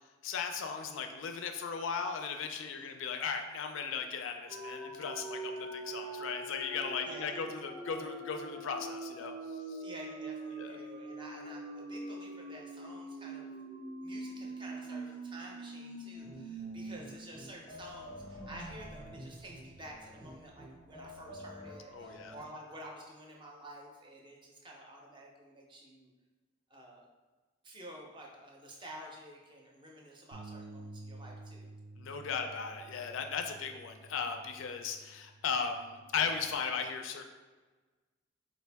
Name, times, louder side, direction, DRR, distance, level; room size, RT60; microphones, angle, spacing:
voice 1, 0.2-9.8 10.6-10.8 21.9-22.3 32.0-37.2, left 6 dB, 70° left, 5 dB, 0.4 m, -37 dB
sound 1, 4.5-17.0 17.3-17.4 17.8-20.5, right 2 dB, 90° right, 0.9 m, -44 dB
voice 2, 7.0-7.4 9.8-13.5 14.0-26.1 26.7-27.1 27.6-31.7, right 1 dB, 25° right, -1 dB, 0.5 m, -50 dB
sound 2, 16.1-22.4, left 1 dB, 15° left, 0.7 m, -50 dB
Bass guitar, 30.3-36.6, right 2 dB, 70° right, 0.5 m, -51 dB
4.4 x 2.6 x 3.3 m, 1.3 s
head